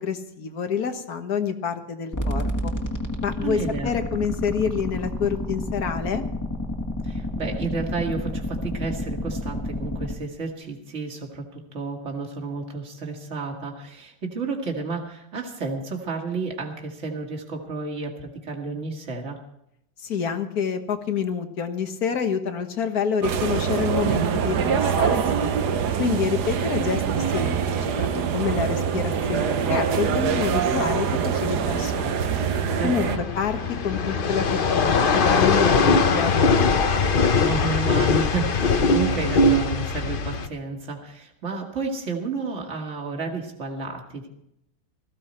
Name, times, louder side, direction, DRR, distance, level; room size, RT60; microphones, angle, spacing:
voice 1, 0.0-2.7 3.2-6.2 20.0-25.5 26.0-28.1 28.3-31.1 31.3-32.3 32.8-33.6 33.8-36.8, left 6 dB, 65° left, 7 dB, 1.8 m, -28 dB
sound 1, 2.1-10.1, left 1 dB, 10° left, 1.5 m, -30 dB
voice 2, 3.4-3.9 7.0-19.4 26.0-26.2 32.8-33.2 37.4-44.3, right 4 dB, 45° right, 1 dB, 2.4 m, -31 dB
sound 2, 23.2-33.2, right 7 dB, 80° right, 1.5 m, -24 dB
sound 3, 29.6-40.5, left 4 dB, 40° left, 0.8 m, -22 dB
18.0 x 15.0 x 4.4 m, 0.78 s
omnidirectional pair, 1.7 m